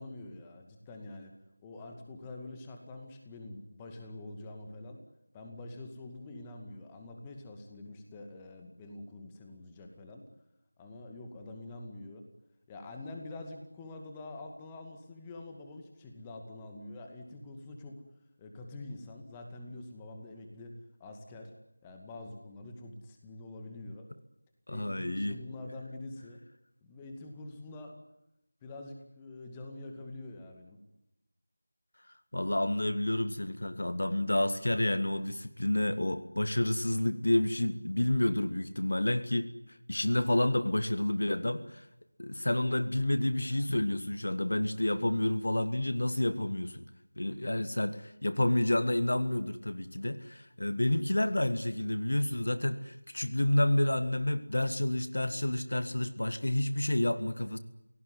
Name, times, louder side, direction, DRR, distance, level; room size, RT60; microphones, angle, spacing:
voice 1, 0.0-1.4 1.6-5.0 5.3-10.3 10.8-12.3 12.7-18.0 18.4-21.5 21.8-24.1 24.7-26.4 26.8-28.0 28.6-30.8, left 2 dB, 10° left, 4 dB, 2.2 m, -45 dB
voice 2, 24.7-25.3 32.3-41.9 42.2-46.9 47.2-57.6, left 1 dB, 55° left, 12 dB, 1.7 m, -29 dB
26.5 x 17.5 x 9.8 m, 0.85 s
figure-of-eight pair, 170°, 0 cm